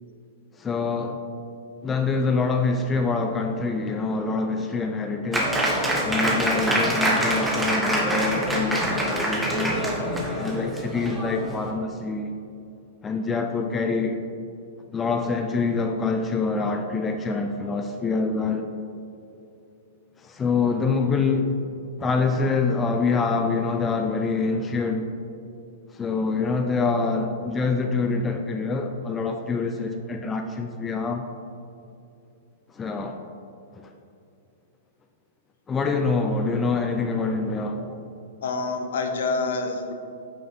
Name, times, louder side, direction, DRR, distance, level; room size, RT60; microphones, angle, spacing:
voice 1, 0.6-1.2 1.8-5.5 6.0-9.7 10.4-12.3 13.0-14.2 14.9-18.7 20.2-21.5 22.0-25.1 25.9-31.2 32.7-33.2 35.7-38.0, left 4 dB, 15° left, 5 dB, 0.4 m, -25 dB
Applause, 5.3-11.7, right 1 dB, 5° right, 1.1 m, -25 dB
voice 2, 38.4-39.9, left 3 dB, 70° left, 5 dB, 0.9 m, -27 dB
8.4 x 6.2 x 2.8 m, 2.7 s
hypercardioid pair, 125°, 0 cm